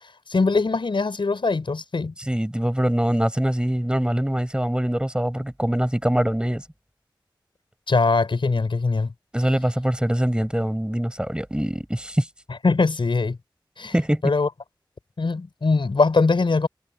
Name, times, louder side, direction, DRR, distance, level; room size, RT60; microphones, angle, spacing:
voice 1, 0.3-2.1 7.9-9.1 12.5-13.4 13.8-13.9 14.2-14.5 15.2-16.7, left 3 dB, 85° left, 6.0 m, -21 dB
voice 2, 2.3-6.6 9.3-12.3 13.9-14.2, right 1 dB, 10° right, 7.0 m, -23 dB
wide cardioid pair, 55°, 8 cm